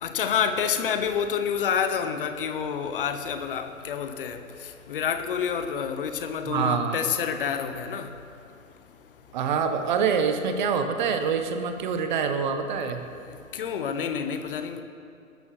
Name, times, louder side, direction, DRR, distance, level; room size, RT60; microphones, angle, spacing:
voice 1, 0.0-4.4 4.9-8.1 13.5-14.8, left 7 dB, 40° left, 8 dB, 0.8 m, -28 dB
voice 2, 6.5-7.0 9.3-13.0, right 6 dB, 35° right, 7 dB, 0.9 m, -25 dB
20.5 x 13.0 x 3.1 m, 2.6 s
figure-of-eight pair, 125°, 42 cm